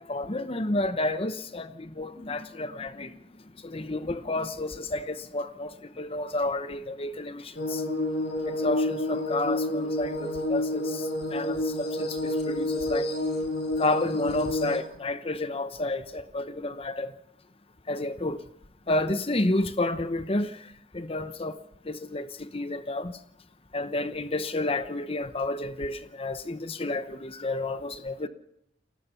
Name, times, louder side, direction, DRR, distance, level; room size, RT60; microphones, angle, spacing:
voice 1, 0.0-3.1 3.6-7.8 8.5-11.0 11.3-13.1 13.8-17.1 17.9-18.4 18.9-20.5 20.9-21.5 21.9-23.1 23.7-28.3, left 2 dB, 30° left, 0.9 m, -30 dB
sound 1, 7.5-14.8, left 1 dB, 65° left, 7.5 m, -29 dB
29.0 x 18.5 x 5.7 m
head